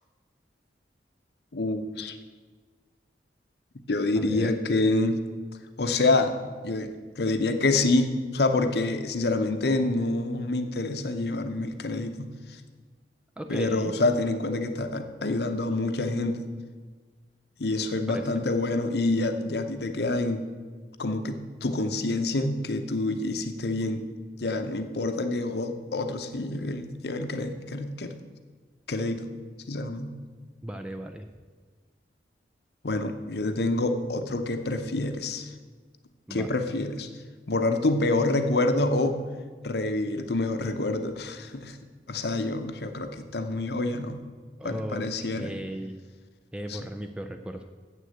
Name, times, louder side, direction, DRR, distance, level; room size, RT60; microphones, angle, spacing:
voice 1, 1.5-2.2 3.9-5.2 5.8-6.4 6.6-6.9 7.2-12.3 13.5-16.4 17.6-20.4 21.0-24.1 24.4-28.1 28.9-29.3 29.7-30.1 32.8-35.5 36.3-37.1 37.5-39.2 39.6-41.8 42.1-44.2 44.6-45.5 46.7-46.8, left 2 dB, 60° left, 8 dB, 0.8 m, -27 dB
voice 2, 4.2-4.5 13.4-13.9 18.0-18.3 30.6-31.3 36.3-36.5 44.6-46.0 46.5-47.6, right 1 dB, 5° right, 6 dB, 0.3 m, -36 dB
7.8 x 6.4 x 7.7 m, 1.5 s
head